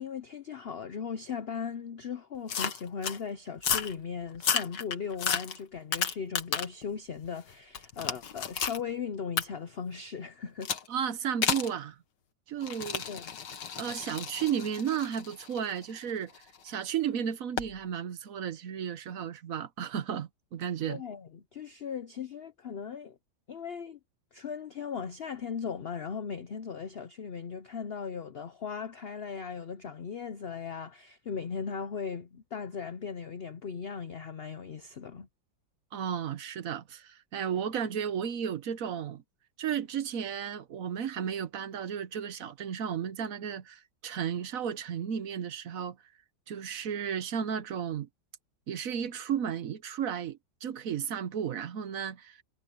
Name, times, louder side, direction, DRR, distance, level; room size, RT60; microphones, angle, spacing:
voice 1, 0.0-10.7 13.1-13.3 20.9-23.2 23.5-24.0 24.3-35.3, left 6 dB, 55° left, 0.6 m, -38 dB
sound 1, 2.5-3.2 3.6-3.9 4.3-6.8 7.2-8.8 9.4-9.5 10.6-10.9 11.4-11.7 12.6-16.6 17.6-17.7, left 7 dB, 75° left, 2.1 m, -32 dB
voice 2, 10.9-12.0 12.5-13.0 13.8-16.3 16.6-21.0 35.9-39.2 39.6-46.0 46.5-48.1 48.7-52.4, right 8 dB, 55° right, 1.2 m, -33 dB
omnidirectional pair, 2.0 m